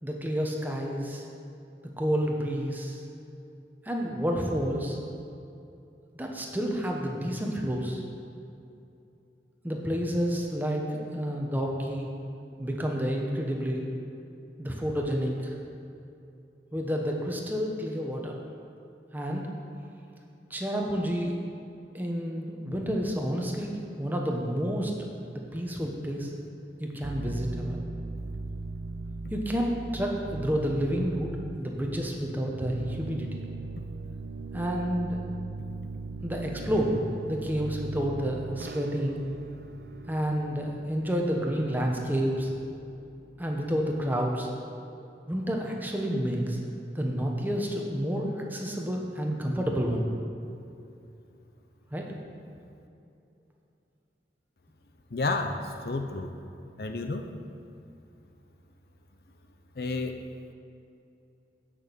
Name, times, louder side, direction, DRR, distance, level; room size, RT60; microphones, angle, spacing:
voice 1, 0.0-1.2 2.0-3.0 3.8-5.0 6.2-8.0 9.6-12.1 12.6-13.9 14.6-15.5 16.7-18.4 19.1-19.5 20.5-21.4 21.9-23.7 24.0-24.9 25.3-26.3 26.8-27.8 29.3-33.4 34.5-35.2 36.2-37.0 37.3-39.2 40.1-42.5 43.4-44.5 45.3-46.6 46.9-50.0 51.9-52.1, equal, 10° right, 0 dB, 1.0 m, -29 dB
sound 1, 27.0-44.4, right 3 dB, 60° right, 0.5 m, -40 dB
voice 2, 55.1-55.6 55.8-56.3 56.8-57.2 59.8-60.2, left 3 dB, 55° left, 5 dB, 0.6 m, -30 dB
9.5 x 6.1 x 6.9 m, 2.7 s
head